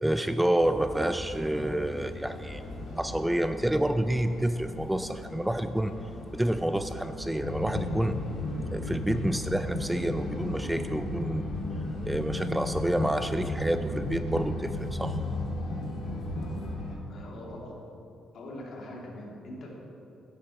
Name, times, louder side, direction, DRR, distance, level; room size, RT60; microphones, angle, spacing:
voice 1, 0.0-2.6 3.0-5.9 6.3-8.2 8.7-11.5 12.0-15.2, right 1 dB, 5° right, 9 dB, 0.4 m, -28 dB
sound 1, 0.6-16.7, left 1 dB, 35° left, 1.8 m, -43 dB
sound 2, 2.2-16.9, left 2 dB, 80° left, 2.1 m, -35 dB
voice 2, 17.1-17.8 18.3-19.7, left 1 dB, 60° left, -2 dB, 2.6 m, -42 dB
10.5 x 10.0 x 4.4 m, 2.6 s
cardioid pair, 90°, 0 cm